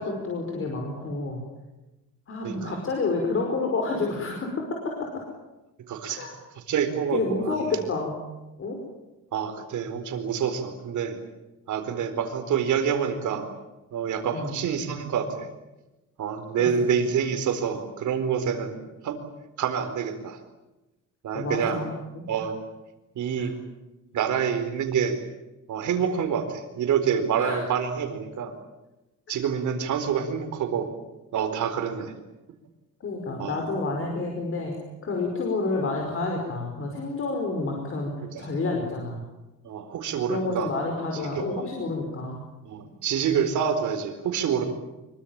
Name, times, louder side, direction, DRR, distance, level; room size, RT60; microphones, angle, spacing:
voice 1, 0.0-1.4 2.3-5.1 6.1-6.3 7.1-8.1 8.6-8.8 14.3-14.6 16.6-16.9 21.3-22.3 23.4-23.5 27.4-27.7 33.0-34.7 35.0-38.1 38.4-39.2 40.3-42.4, left 3 dB, 40° left, 1 dB, 5.2 m, -29 dB
voice 2, 5.9-6.3 6.7-7.6 9.3-11.2 11.7-13.5 13.9-15.5 16.2-18.7 19.0-19.2 19.6-20.4 21.2-21.8 22.3-22.6 23.1-23.6 24.1-25.2 25.7-28.5 29.3-30.9 31.3-32.1 33.4-33.5 38.3-38.5 39.6-40.7 41.3-41.6 42.6-44.6, right 7 dB, 70° right, 7 dB, 4.4 m, -27 dB
25.5 x 23.5 x 9.0 m, 1.0 s
cardioid pair, 175°, 32 cm